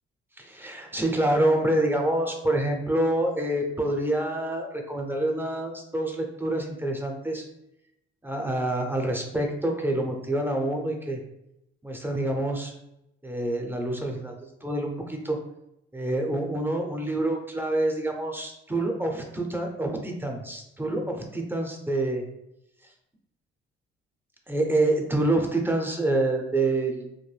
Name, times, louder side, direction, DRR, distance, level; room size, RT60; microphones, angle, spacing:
voice 1, 0.4-7.5 8.2-11.2 11.8-12.7 13.2-15.4 15.9-22.2 24.5-27.0, right 1 dB, 10° right, 2 dB, 0.5 m, -27 dB
2.5 x 2.1 x 3.2 m, 0.83 s
cardioid pair, 90°, 20 cm